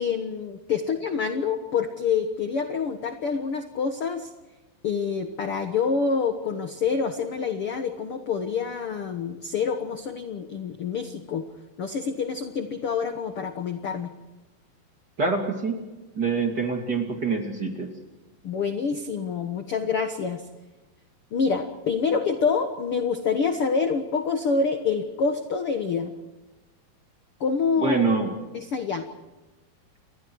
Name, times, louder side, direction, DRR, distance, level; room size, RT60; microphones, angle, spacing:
voice 1, 0.0-4.3 4.8-11.5 11.8-14.1 18.4-20.4 21.3-26.1 27.4-28.0 28.5-29.1, left 5 dB, 60° left, 7 dB, 1.5 m, -27 dB
voice 2, 15.2-15.8 16.2-17.9 27.8-28.3, right 4 dB, 30° right, 3 dB, 2.6 m, -25 dB
29.5 x 22.0 x 4.7 m, 1.1 s
omnidirectional pair, 4.4 m